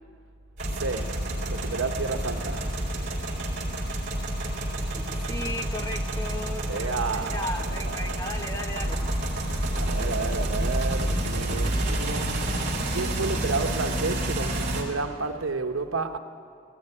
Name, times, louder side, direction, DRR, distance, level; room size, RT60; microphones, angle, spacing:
sound 1, 0.6-14.8, right 1 dB, 35° right, 3.7 m, -29 dB
voice 1, 0.7-2.7 6.7-8.3 9.7-12.3 12.9-16.2, right 3 dB, 80° right, 1.1 m, -31 dB
voice 2, 4.9-9.0, left 1 dB, 15° left, 1.0 m, -36 dB
18.0 x 15.5 x 9.9 m
head